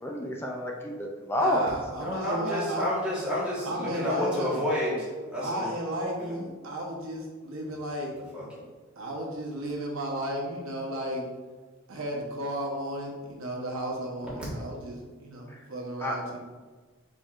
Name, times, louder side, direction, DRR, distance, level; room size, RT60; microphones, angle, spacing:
voice 1, 0.0-1.7 15.5-15.6 16.0-16.2, left 1 dB, 10° left, 0 dB, 0.4 m, -29 dB
voice 2, 1.4-2.9 3.6-4.6 5.4-8.1 9.0-11.3 11.9-16.4, right 1 dB, 85° right, -1 dB, 0.9 m, -34 dB
voice 3, 1.9-5.7 8.3-8.4, left 1 dB, 5° right, -8 dB, 1.4 m, -30 dB
4.5 x 4.4 x 2.4 m, 1.4 s
head